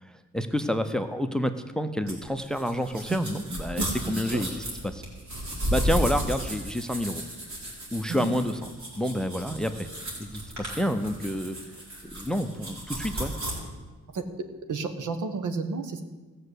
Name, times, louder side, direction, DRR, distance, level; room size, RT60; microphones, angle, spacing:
voice 1, 0.0-5.0 5.7-7.2 7.9-8.7 8.9-9.9 10.2-11.6 12.0-13.3, equal, ahead, 10 dB, 0.7 m, -29 dB
sound 1, 2.1-13.5, equal, 65° right, 4.6 m, -34 dB
voice 2, 14.7-16.0, right 4 dB, 80° right, 7 dB, 1.3 m, -31 dB
15.5 x 6.7 x 8.1 m, 1.3 s
wide cardioid pair, 125°, 30 cm